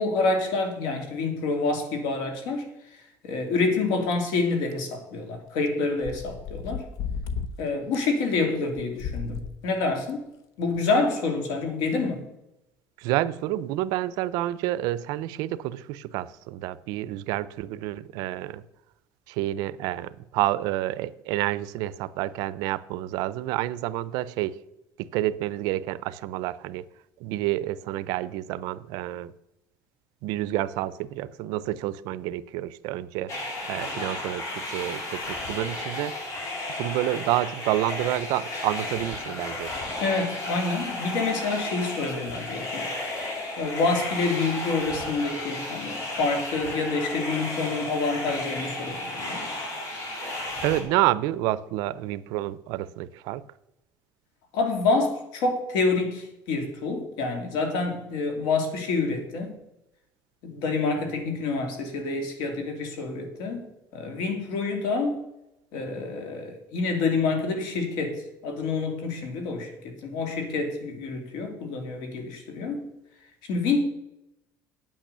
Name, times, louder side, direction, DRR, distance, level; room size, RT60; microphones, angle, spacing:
voice 1, 0.0-2.6 3.2-6.8 7.6-10.2 10.6-12.3 40.0-42.8 43.6-49.5 54.5-59.5 60.4-63.6 63.9-65.2 65.7-72.8 73.4-73.8, left 3 dB, 80° left, 5 dB, 2.6 m, -27 dB
sound 1, 4.1-4.2 4.7-4.8 5.7-5.8 6.0-7.5 7.9-8.0 8.8-9.5 10.1-10.2 10.8-10.9, left 6 dB, 65° left, 0.9 m, -33 dB
voice 2, 13.0-18.6 19.3-24.5 25.0-26.8 27.2-29.3 30.2-33.3 33.7-36.1 36.8-39.7 50.6-53.4, right 15 dB, 80° right, 17 dB, 0.5 m, -29 dB
sound 2, 33.3-50.8, left 2 dB, 50° left, 3.0 m, -33 dB
8.9 x 8.8 x 6.7 m, 0.87 s
cardioid pair, 145°, 7 cm